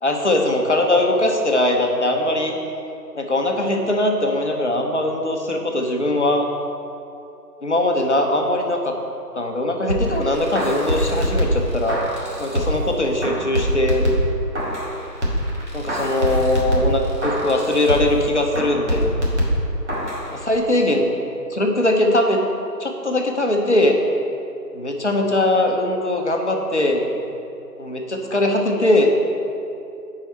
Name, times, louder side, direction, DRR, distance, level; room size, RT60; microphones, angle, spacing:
voice 1, 0.0-2.6 3.1-6.5 7.6-8.9 9.3-12.0 12.4-14.1 15.7-19.2 20.3-21.1 21.5-22.4 22.8-24.0 24.7-27.0 27.8-29.1, left 1 dB, 45° left, 2 dB, 0.8 m, -20 dB
sound 1, 9.9-12.9 13.2-14.9 15.2-18.2 18.5-20.2 20.5-20.6, equal, 45° right, 1.6 m, -23 dB
8.7 x 4.8 x 4.3 m, 2.7 s
figure-of-eight pair, 160°, 49 cm